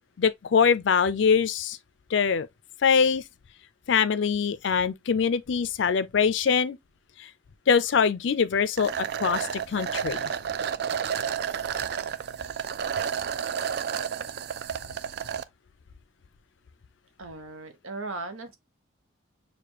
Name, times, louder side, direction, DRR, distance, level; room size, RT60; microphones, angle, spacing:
voice 1, 0.2-1.8 2.1-2.5 2.8-3.2 3.9-6.8 7.2-7.3 7.7-8.9 9.2-10.3, left 6 dB, 60° left, 0.4 m, -23 dB
sound 1, 8.8-15.4, right 7 dB, 50° right, 0.3 m, -31 dB
voice 2, 17.2-18.6, right 3 dB, 90° right, 1.0 m, -37 dB
6.6 x 2.3 x 2.9 m
head